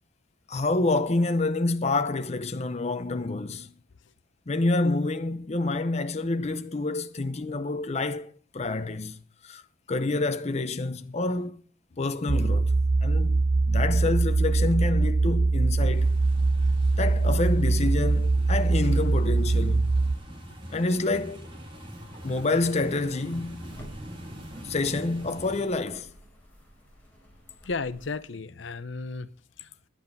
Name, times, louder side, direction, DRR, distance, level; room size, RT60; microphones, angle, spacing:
voice 1, 0.5-3.7 4.5-9.2 9.4-9.6 9.9-11.6 12.0-12.7 13.0-13.4 13.6-16.2 17.0-19.9 20.7-21.6 22.2-23.8 24.6-26.1, left 2 dB, 35° left, 0.7 m, -28 dB
sound 1, 12.3-20.2, right 3 dB, 50° right, 0.6 m, -23 dB
sound 2, 15.9-25.6, equal, 30° right, 3.1 m, -44 dB
sound 3, 22.0-28.1, equal, 10° left, 4.6 m, -51 dB
voice 2, 27.6-29.3 29.6-29.7, left 4 dB, 70° left, 0.7 m, -35 dB
10.5 x 10.0 x 5.4 m
head